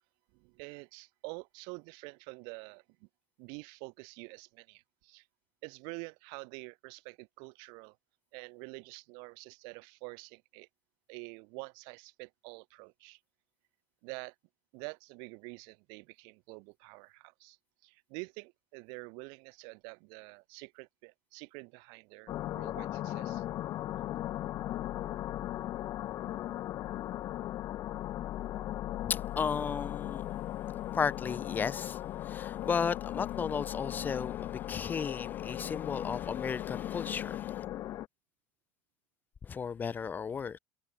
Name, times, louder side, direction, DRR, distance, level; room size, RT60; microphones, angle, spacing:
voice 1, 0.3-3.1 3.4-5.3 5.6-8.0 8.3-10.7 11.1-13.2 14.0-14.3 14.7-17.6 17.8-23.4, right 35 dB, 75° right, 1.4 m, -47 dB
sound 1, 22.3-38.1, left 13 dB, 50° left, 1.2 m, -37 dB
voice 2, 29.1-30.2 30.9-37.7 39.4-40.6, left 6 dB, 25° left, 0.4 m, -34 dB
supercardioid pair, 125°, 8 cm